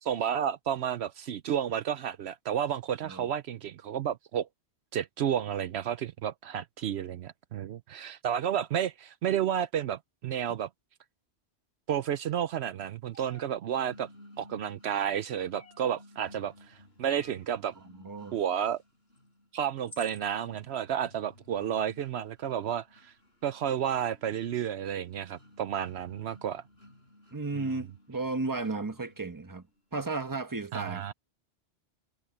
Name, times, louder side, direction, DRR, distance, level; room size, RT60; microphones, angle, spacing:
voice 1, 0.0-4.5 4.9-10.7 11.9-14.1 14.4-17.7 18.3-18.8 19.5-23.1 23.4-26.6 27.5-27.6 30.7-31.1, right 9 dB, 75° right, 0.9 m, -31 dB
sound 1, 13.1-13.5 15.5-16.0 17.0-17.5 19.2-19.3 19.9-20.3, left 1 dB, 40° left, 1.8 m, -50 dB
sound 2, 13.8-29.8, left 1 dB, 65° left, 7.3 m, -57 dB
voice 2, 17.8-18.4 27.3-29.7 29.9-31.0, right 3 dB, 20° right, 1.3 m, -34 dB
omnidirectional pair, 1.1 m